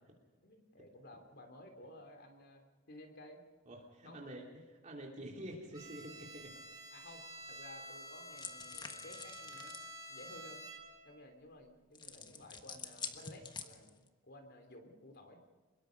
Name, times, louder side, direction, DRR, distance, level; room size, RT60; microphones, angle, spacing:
voice 1, 0.4-3.4 4.0-4.2 6.9-7.2 7.5-9.8 10.1-10.6 11.0-15.4, left 1 dB, 55° left, 6 dB, 3.3 m, -55 dB
voice 2, 3.7-6.6, right 1 dB, 35° right, -1 dB, 3.0 m, -48 dB
Bowed string instrument, 5.7-11.2, right 1 dB, 20° right, 4.0 m, -50 dB
sound 1, 8.4-9.9 11.9-14.1, left 5 dB, 20° left, 1.4 m, -47 dB
24.5 x 21.5 x 5.2 m, 1.4 s
head